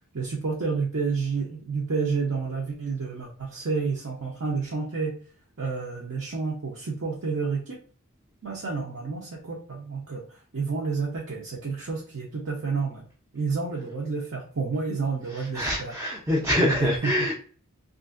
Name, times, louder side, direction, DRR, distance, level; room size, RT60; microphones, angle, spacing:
voice 1, 0.1-5.2 5.6-7.8 8.4-13.1 13.3-16.0 16.8-17.3, right 4 dB, 60° right, -2 dB, 0.7 m, -30 dB
voice 2, 15.5-17.3, left 1 dB, 10° right, -3 dB, 0.5 m, -24 dB
2.9 x 2.5 x 2.4 m, 0.43 s
head